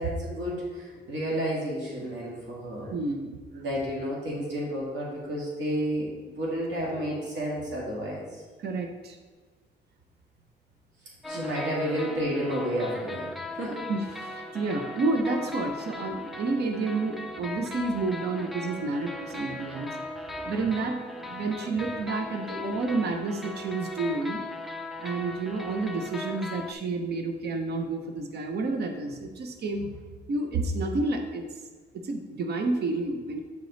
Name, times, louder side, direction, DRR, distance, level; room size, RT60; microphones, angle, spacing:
voice 1, 0.0-2.9 3.5-8.2 11.3-13.3 13.6-13.8 20.4-20.5 22.5-22.7 23.2-23.3, equal, 85° right, -4 dB, 1.9 m, -31 dB
voice 2, 2.9-3.6 8.6-9.2 11.3-11.4 13.9-19.9 20.5-24.4 25.0-29.9 30.3-31.5 32.0-33.4, right 3 dB, 65° right, 4 dB, 0.7 m, -30 dB
sound 1, 11.2-26.7, left 2 dB, ahead, 0.4 m, -38 dB
8.2 x 5.0 x 3.9 m, 1.3 s
wide cardioid pair, 170°, 18 cm